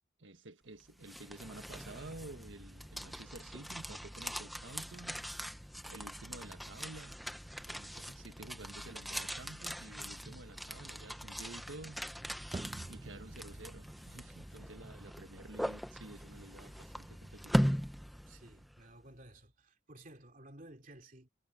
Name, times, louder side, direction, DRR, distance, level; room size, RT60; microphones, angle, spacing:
voice 1, 0.2-5.2 5.9-7.2 7.6-12.0 12.9-17.7, right 2 dB, 80° right, 1.5 m, -51 dB
sound 1, 0.8-18.8, equal, ahead, 0.8 m, -40 dB
sound 2, 12.5-18.0, right 2 dB, 20° right, 0.3 m, -50 dB
voice 2, 18.3-21.3, right 1 dB, 45° right, 2.9 m, -55 dB
head